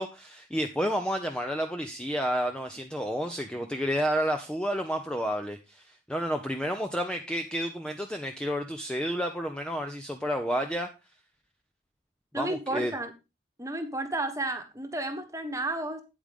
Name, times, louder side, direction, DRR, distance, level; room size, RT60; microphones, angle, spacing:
voice 1, 0.0-10.9 12.3-12.9, equal, 5° left, 4 dB, 0.6 m, -30 dB
voice 2, 12.3-13.1 13.6-16.0, right 2 dB, 15° right, 7 dB, 1.3 m, -32 dB
9.0 x 8.5 x 3.6 m, 0.26 s
head